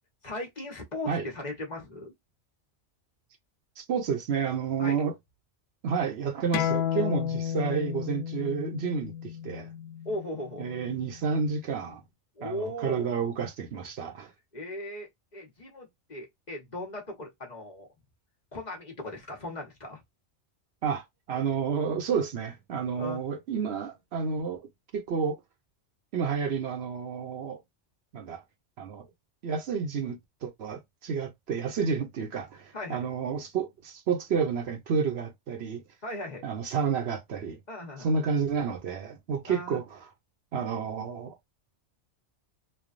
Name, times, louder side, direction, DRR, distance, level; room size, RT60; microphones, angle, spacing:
voice 1, 0.2-2.1 4.8-5.0 10.0-10.7 12.4-13.1 14.5-17.9 18.5-20.0 23.0-23.2 32.7-33.0 36.0-36.5 37.7-38.1 39.5-39.8, left 1 dB, 40° left, 1.0 m, -38 dB
voice 2, 3.8-5.1 5.8-9.7 10.6-12.0 12.4-14.3 20.8-24.6 24.9-25.4 26.1-27.6 28.1-28.4 28.8-29.1 29.4-35.8 36.4-37.6 38.0-40.1 40.5-41.4, right 6 dB, 65° right, 0.9 m, -30 dB
sound 1, 6.5-11.7, left 9 dB, 85° left, 0.9 m, -33 dB
3.2 x 2.3 x 2.3 m
omnidirectional pair, 1.2 m